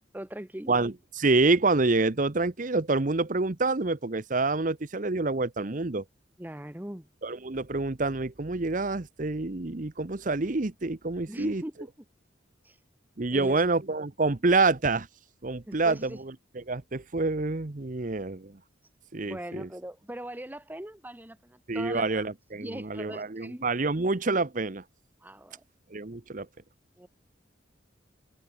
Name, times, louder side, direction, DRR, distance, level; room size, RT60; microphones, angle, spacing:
voice 1, 0.1-0.7 6.4-7.1 11.3-11.9 12.6-12.8 13.3-13.6 15.7-16.2 19.2-22.2 22.6-23.6 25.2-25.6 27.0-27.1, right 1 dB, 10° right, 0.9 m, -40 dB
voice 2, 0.7-6.0 7.2-11.6 13.2-15.1 15.4-18.6 19.1-19.7 21.7-24.8 25.9-26.5, right 3 dB, 45° right, 0.9 m, -27 dB
head